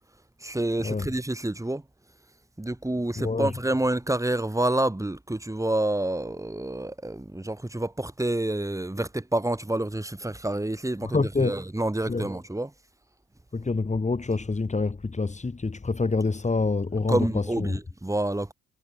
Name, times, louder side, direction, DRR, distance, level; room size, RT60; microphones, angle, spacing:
voice 1, 0.4-1.8 2.6-12.7 17.1-18.5, right 1 dB, 10° right, 6.6 m, -28 dB
voice 2, 3.2-3.5 11.0-11.6 12.1-12.3 13.5-17.7, left 3 dB, 25° left, 4.0 m, -27 dB
cardioid pair, 90°, 30 cm